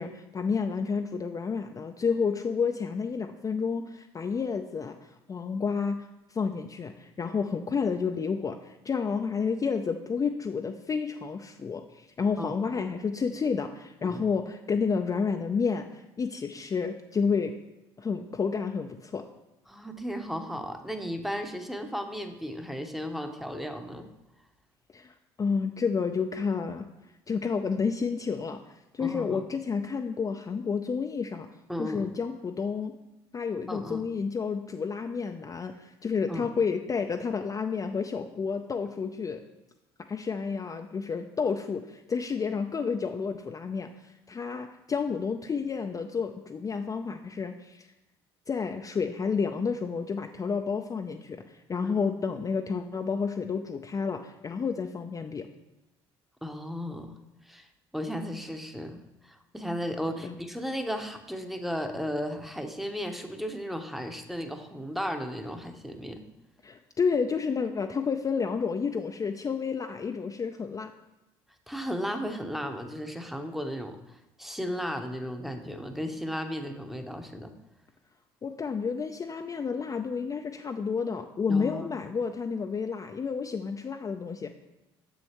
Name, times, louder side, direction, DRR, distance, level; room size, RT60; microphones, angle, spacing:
voice 1, 0.0-17.5 18.0-19.2 24.9-26.9 27.3-28.6 28.9-31.5 31.8-32.9 33.3-39.4 40.1-47.9 48.5-55.5 60.2-60.3 66.6-70.9 78.4-84.5, left 5 dB, 25° left, 5 dB, 0.4 m, -30 dB
voice 2, 19.7-24.1 29.0-29.4 31.7-32.0 33.7-34.0 36.3-36.5 51.8-51.9 56.4-57.1 57.5-57.7 57.9-66.2 71.7-77.5 81.5-81.9, equal, ahead, 6 dB, 0.8 m, -35 dB
7.0 x 6.4 x 3.0 m, 0.98 s
hypercardioid pair, 60°, 13 cm